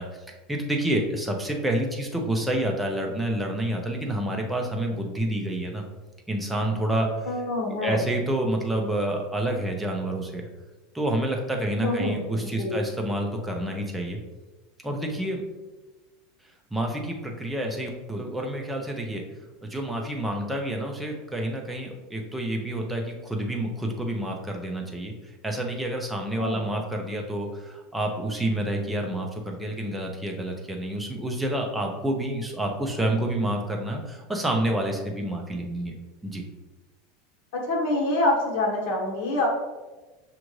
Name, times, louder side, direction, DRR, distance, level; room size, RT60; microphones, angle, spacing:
voice 1, 0.0-5.8 6.3-7.3 7.7-10.5 10.9-14.2 14.8-15.4 16.7-19.2 19.6-35.9 36.2-36.4, right 1 dB, 5° right, 1 dB, 0.6 m, -28 dB
voice 2, 7.3-8.0 11.8-12.2 12.4-12.8 26.4-26.6 37.5-39.5, left 2 dB, 60° left, -1 dB, 1.2 m, -26 dB
6.2 x 2.5 x 3.1 m, 1.2 s
supercardioid pair, 160°, 0 cm